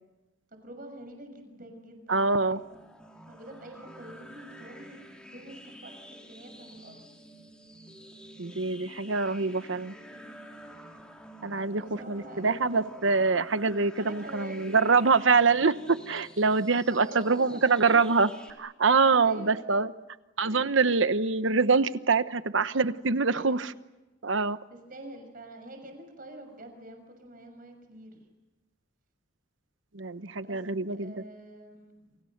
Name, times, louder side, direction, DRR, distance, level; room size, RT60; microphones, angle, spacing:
voice 1, 0.5-2.6 3.3-6.0 6.3-7.0 9.9-10.4 11.5-12.8 13.9-14.8 16.9-18.4 19.2-19.8 23.3-23.6 24.7-28.3 30.3-30.6 30.9-32.2, right 1 dB, 45° right, 6 dB, 6.4 m, -46 dB
voice 2, 2.1-2.6 8.4-9.9 11.4-18.3 18.6-19.9 20.4-23.7 24.2-24.6 29.9-31.1, right 4 dB, 75° right, 13 dB, 1.0 m, -25 dB
sound 1, 2.5-18.5, equal, 5° left, 3.5 m, -49 dB
29.5 x 26.5 x 6.7 m, 1.1 s
head